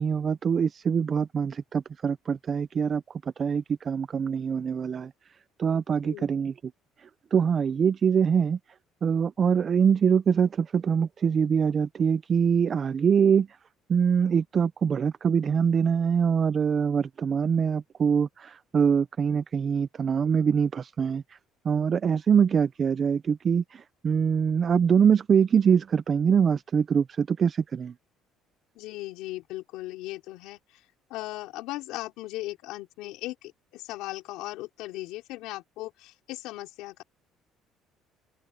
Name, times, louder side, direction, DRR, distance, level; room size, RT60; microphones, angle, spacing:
voice 1, 0.0-3.0 3.4-5.1 5.6-6.5 7.0-8.6 9.0-13.5 13.9-21.2 21.6-27.9, right 7 dB, 30° right, 0.4 m, -24 dB
voice 2, 28.8-30.8 31.1-37.0, left 18 dB, 80° left, 4.2 m, -38 dB
cardioid pair, 165°, 0 cm